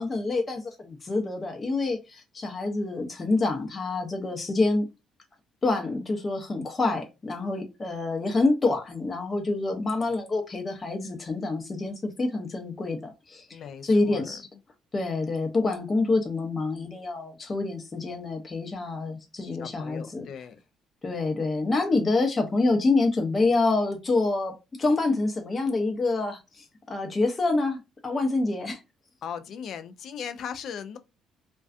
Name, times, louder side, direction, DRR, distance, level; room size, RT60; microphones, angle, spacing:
voice 1, 0.0-4.9 5.6-14.5 14.9-20.2 21.0-28.8, left 3 dB, 35° left, 0.7 m, -27 dB
voice 2, 13.5-14.4 19.6-20.6 29.2-31.0, left 7 dB, 65° left, 0.4 m, -38 dB
2.3 x 2.2 x 2.4 m
supercardioid pair, 65°, 0 cm